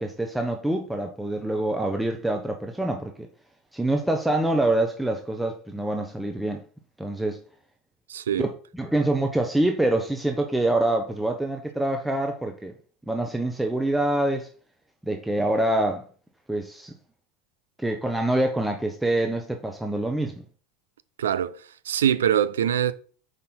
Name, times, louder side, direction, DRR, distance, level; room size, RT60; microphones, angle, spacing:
voice 1, 0.0-3.1 3.7-6.6 7.0-7.4 8.4-12.7 13.1-14.5 15.0-16.1 16.5-16.9 17.8-20.4, right 1 dB, 5° right, 0.7 m, -25 dB
voice 2, 8.1-8.5 21.2-21.6 21.9-22.9, right 10 dB, 85° right, 0.4 m, -23 dB
5.0 x 4.3 x 4.4 m
hypercardioid pair, 85°, 0 cm